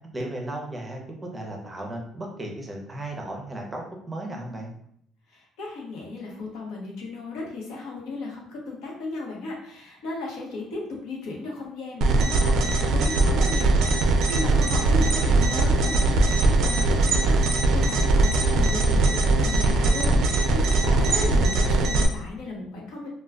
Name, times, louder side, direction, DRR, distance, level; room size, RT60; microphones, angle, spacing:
voice 1, 0.1-4.7 14.6-14.8, right 1 dB, 15° right, 0 dB, 0.6 m, -35 dB
voice 2, 5.3-23.1, left 2 dB, 85° left, -2 dB, 0.9 m, -35 dB
sound 1, 12.0-22.1, right 2 dB, 65° right, 0.3 m, -21 dB
2.2 x 2.2 x 3.5 m, 0.68 s
cardioid pair, 125°, 0 cm